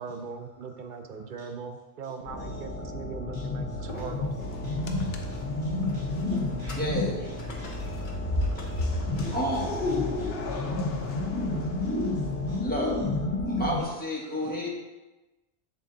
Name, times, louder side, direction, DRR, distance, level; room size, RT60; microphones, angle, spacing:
voice 1, 0.0-4.3, right 5 dB, 55° right, 6 dB, 0.6 m, -40 dB
voice 2, 0.6-1.4 2.0-2.9 3.3-4.5 5.3-6.8 7.2-9.4 10.5-10.9 11.5-12.6 13.4-13.9 14.2-14.3, right 1 dB, 85° right, -4 dB, 1.3 m, -51 dB
sound 1, 2.3-13.8, left 2 dB, 85° left, 1.3 m, -31 dB
sound 2, 3.7-10.2, left 2 dB, 50° left, 1.1 m, -41 dB
sound 3, 4.4-12.8, left 4 dB, 65° left, 0.9 m, -39 dB
voice 3, 6.7-7.6 9.3-9.7 12.6-14.7, equal, 10° left, -4 dB, 1.2 m, -31 dB
7.6 x 3.6 x 3.7 m, 1.1 s
omnidirectional pair, 1.1 m